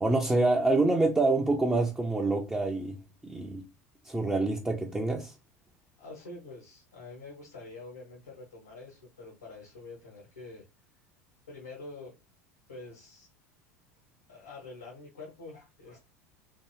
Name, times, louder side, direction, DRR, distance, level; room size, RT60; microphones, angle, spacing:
voice 1, 0.0-3.0 3.2-3.6 4.1-5.3, right 2 dB, 10° right, 0.5 m, -26 dB
voice 2, 6.0-10.6 11.5-12.1 12.7-13.3 14.3-16.0, left 3 dB, 85° left, 1.3 m, -46 dB
2.7 x 2.6 x 3.0 m
figure-of-eight pair, 75°, 8 cm